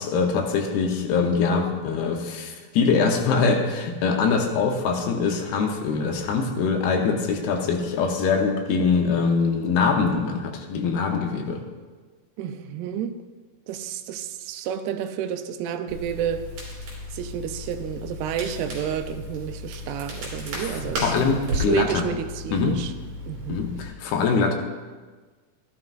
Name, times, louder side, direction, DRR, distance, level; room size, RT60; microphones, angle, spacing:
voice 1, 0.0-11.6 20.7-22.0 22.5-22.8 23.5-24.5, left 5 dB, 80° left, 2.8 m, -23 dB
voice 2, 12.4-13.1 13.7-16.5 17.1-22.9 23.3-23.7, right 9 dB, 90° right, 2.6 m, -30 dB
Crackle, 15.9-23.9, equal, 55° right, 4.7 m, -34 dB
14.5 x 11.5 x 2.5 m
omnidirectional pair, 4.6 m